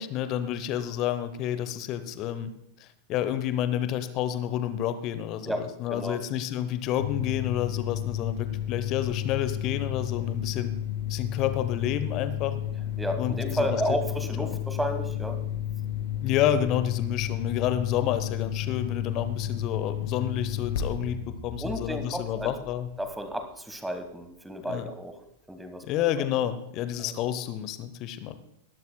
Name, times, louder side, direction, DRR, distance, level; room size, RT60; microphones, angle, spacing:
voice 1, 0.0-2.5 2.8-10.7 11.1-12.6 13.2-13.7 14.4-14.6 16.2-22.9 24.7-24.8 25.8-28.4, left 11 dB, 40° left, 12 dB, 0.9 m, -29 dB
voice 2, 5.9-6.2 13.0-15.4 21.6-22.5 23.0-25.2 25.5-25.9 27.0-27.1, equal, 5° right, 7 dB, 1.4 m, -32 dB
sound 1, 7.0-23.3, left 10 dB, 60° left, 2.4 m, -32 dB
19.0 x 12.0 x 2.3 m, 0.78 s
figure-of-eight pair, 90°, 0 cm